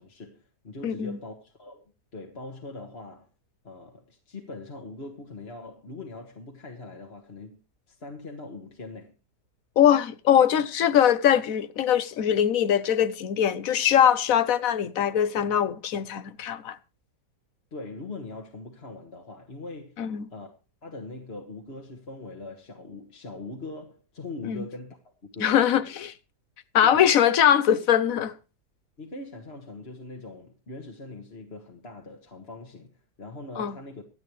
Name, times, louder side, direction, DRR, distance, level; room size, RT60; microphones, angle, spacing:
voice 1, 0.0-3.3 3.6-7.6 7.9-9.1 17.7-20.0 20.3-20.5 20.8-25.6 26.8-27.1 29.0-34.0, left 2 dB, 40° left, 1.8 m, -41 dB
voice 2, 0.8-1.2 9.8-16.8 20.0-20.2 24.5-24.6 25.4-26.1 26.7-28.3 33.6-33.7, left 9 dB, 60° left, 1.2 m, -22 dB
26.0 x 8.7 x 3.2 m
omnidirectional pair, 1.8 m